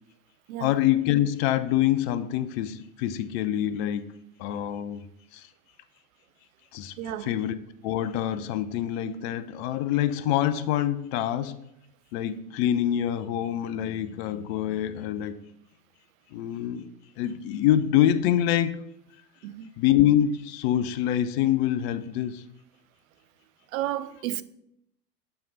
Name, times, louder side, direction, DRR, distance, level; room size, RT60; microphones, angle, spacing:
voice 1, 0.6-4.1 4.4-5.0 6.7-6.9 7.3-7.6 7.8-11.6 12.1-15.4 16.3-16.9 17.2-18.8 19.8-22.4, left 11 dB, 40° left, 0.6 m, -25 dB
voice 2, 7.0-7.3 19.4-19.7 23.7-24.4, right 13 dB, 55° right, 0.6 m, -32 dB
6.7 x 5.8 x 3.9 m
hypercardioid pair, 95°, 49 cm